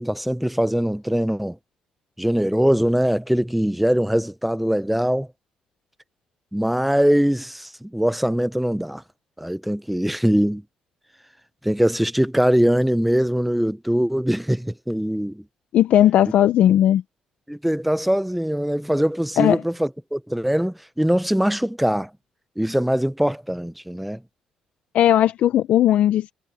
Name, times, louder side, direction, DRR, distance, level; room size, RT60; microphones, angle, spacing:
voice 1, 0.0-1.6 2.2-5.3 6.5-9.0 9.4-10.6 11.6-15.4 17.5-22.1 22.6-24.2, equal, 5° right, 0.6 m, -22 dB
voice 2, 15.7-17.0 19.4-19.6 24.9-26.3, left 11 dB, 65° left, 0.7 m, -17 dB
cardioid pair, 100°, 2 cm